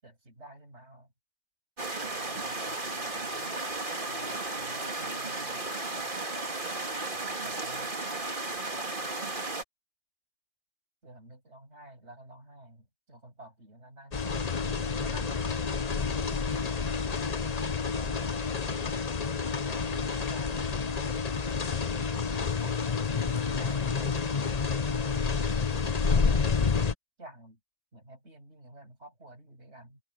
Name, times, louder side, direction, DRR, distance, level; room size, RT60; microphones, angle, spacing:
voice 1, 0.0-1.1 2.0-3.6 4.1-5.7 7.4-8.0 11.0-15.5 16.3-17.2 18.0-19.0 19.4-21.1 22.6-22.8 23.1-24.3 27.2-27.6 27.9-30.0, right 1 dB, 65° right, 8.2 m, -51 dB
sound 1, 1.8-9.6, right 2 dB, 40° right, 2.7 m, -34 dB
sound 2, 14.1-26.9, left 5 dB, 35° left, 1.0 m, -29 dB
omnidirectional pair, 1.3 m